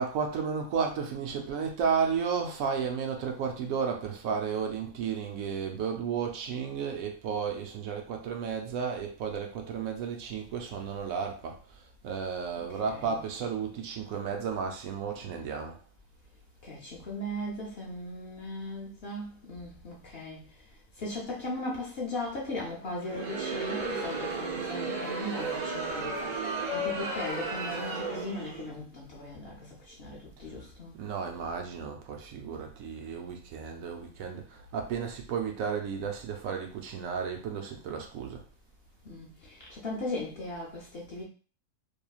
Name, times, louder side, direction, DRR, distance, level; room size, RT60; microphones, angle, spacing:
voice 1, 0.0-11.6 12.0-15.8 31.0-38.4, right 6 dB, 70° right, 1.0 m, -33 dB
voice 2, 12.7-13.2 16.6-20.7 21.0-31.0 39.0-41.2, left 1 dB, 55° left, 0.8 m, -38 dB
Crowd, 23.0-28.7, right 3 dB, 45° right, 0.6 m, -34 dB
3.0 x 2.6 x 2.3 m
omnidirectional pair, 1.5 m